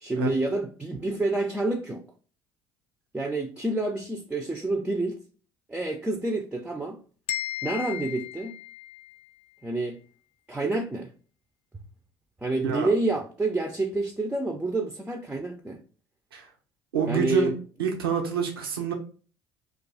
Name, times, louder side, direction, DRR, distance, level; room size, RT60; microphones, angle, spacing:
voice 1, 0.0-2.0 3.1-5.2 5.7-7.0 7.6-8.5 9.6-10.0 10.5-11.1 11.7-11.8 12.4-15.8 17.1-17.5, right 2 dB, 10° right, 0.5 m, -28 dB
sound 1, 7.3-9.3, left 13 dB, 60° left, 0.4 m, -35 dB
voice 2, 16.9-17.5 17.8-18.9, right 6 dB, 90° right, 0.6 m, -26 dB
2.5 x 2.3 x 3.8 m
hypercardioid pair, 60°, 12 cm